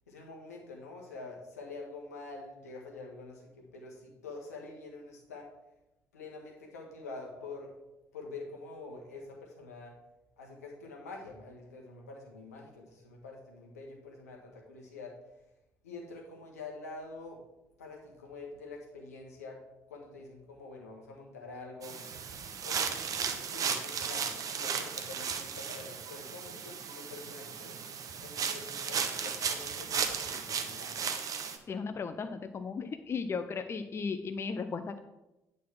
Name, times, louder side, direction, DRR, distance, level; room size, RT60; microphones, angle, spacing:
voice 1, 0.1-5.5 6.1-7.7 8.1-9.9 10.4-15.1 15.8-17.4 17.8-19.6 19.9-22.1 22.6-27.8 28.2-31.0, left 3 dB, 75° left, 0 dB, 1.4 m, -46 dB
sound 1, 21.8-31.6, right 6 dB, 45° right, 0.9 m, -35 dB
voice 2, 31.7-35.0, left 5 dB, 30° left, 8 dB, 0.5 m, -36 dB
9.3 x 4.0 x 5.9 m, 0.98 s
figure-of-eight pair, 50°, 8 cm